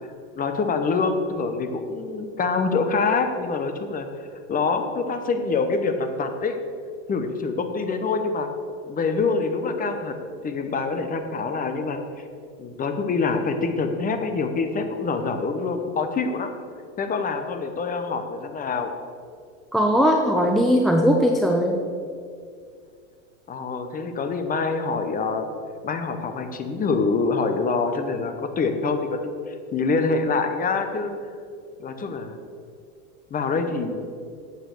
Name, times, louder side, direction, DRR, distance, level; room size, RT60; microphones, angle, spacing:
voice 1, 0.3-4.1 4.5-6.6 7.1-8.5 8.9-10.2 10.4-12.0 12.6-16.5 17.0-18.9 23.5-25.5 25.8-31.1 31.8-32.4 33.3-34.1, left 4 dB, 20° left, 7 dB, 0.9 m, -25 dB
voice 2, 19.7-21.8, equal, ahead, 1 dB, 0.5 m, -19 dB
8.9 x 7.6 x 6.6 m, 2.3 s
supercardioid pair, 130°, 40 cm